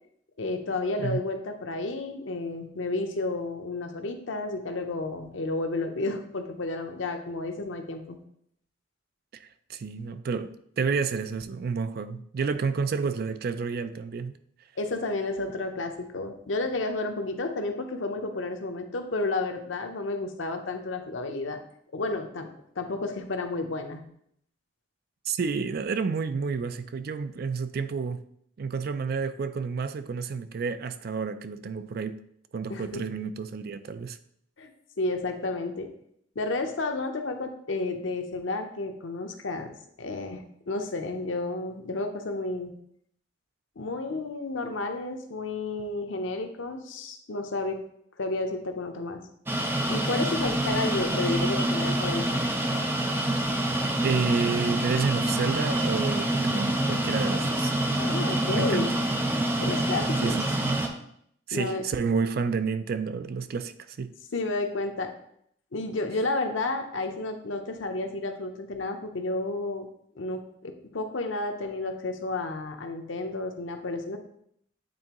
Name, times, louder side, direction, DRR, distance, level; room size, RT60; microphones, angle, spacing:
voice 1, 0.4-8.2 14.8-21.6 21.9-22.5 22.8-24.0 32.7-33.1 34.6-34.7 35.0-35.9 36.4-39.7 40.0-42.7 43.8-47.8 48.2-49.2 49.9-52.2 58.0-58.9 59.6-60.4 61.5-61.8 64.3-65.1 65.7-69.9 70.2-74.2, left 2 dB, 85° left, 0.8 m, -31 dB
voice 2, 9.7-14.3 25.3-28.2 28.6-32.2 32.5-34.2 54.0-57.7 58.5-58.9 60.2-60.7 61.5-64.1, right 5 dB, 55° right, 0.4 m, -30 dB
sound 1, 49.5-60.9, right 1 dB, 10° right, 0.6 m, -26 dB
8.7 x 3.6 x 3.0 m
head